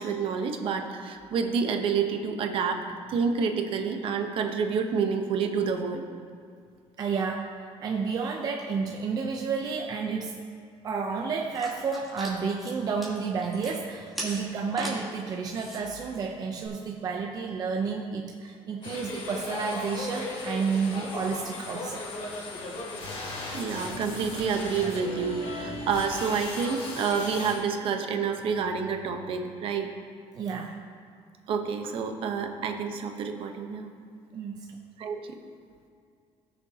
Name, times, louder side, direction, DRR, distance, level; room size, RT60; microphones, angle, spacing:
voice 1, 0.0-2.8 3.1-6.1 23.5-29.9 31.5-33.9 35.0-35.4, right 6 dB, 55° right, 4 dB, 1.0 m, -28 dB
voice 2, 7.0-10.4 10.8-22.0 30.3-30.8 34.3-34.8, right 5 dB, 35° right, 1 dB, 0.7 m, -31 dB
sound 1, 11.5-16.7, right 1 dB, ahead, 2.6 m, -41 dB
sound 2, 18.8-27.5, left 2 dB, 55° left, 2.6 m, -37 dB
17.5 x 6.8 x 2.9 m, 2.4 s
cardioid pair, 155°, 11 cm